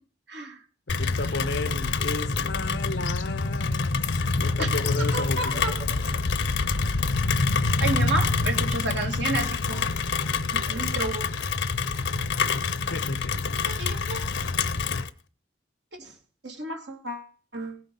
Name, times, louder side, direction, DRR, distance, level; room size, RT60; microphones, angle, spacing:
voice 1, 0.3-0.6 4.6-4.7 5.0-6.0 7.3-7.5 7.8-9.9 10.4-11.3 13.6-14.3 16.0-16.2 16.4-17.8, right 2 dB, 70° right, 2.7 m, -32 dB
Rain, 0.9-15.1, left 4 dB, 90° left, 0.8 m, -26 dB
voice 2, 0.9-5.6 12.8-13.3, left 2 dB, 65° left, 1.0 m, -33 dB
17.5 x 6.0 x 5.4 m
head